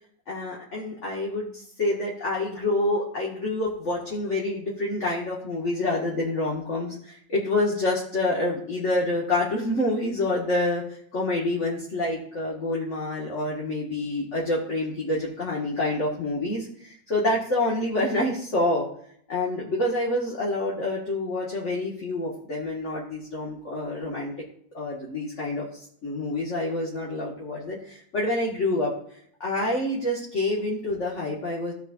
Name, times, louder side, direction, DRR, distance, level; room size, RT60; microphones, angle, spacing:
voice 1, 0.3-10.8 11.1-18.9 19.3-24.3 24.7-25.7 26.0-28.9 29.4-31.7, left 2 dB, 40° left, -5 dB, 2.1 m, -27 dB
16.0 x 5.7 x 2.6 m, 0.63 s
omnidirectional pair, 1.9 m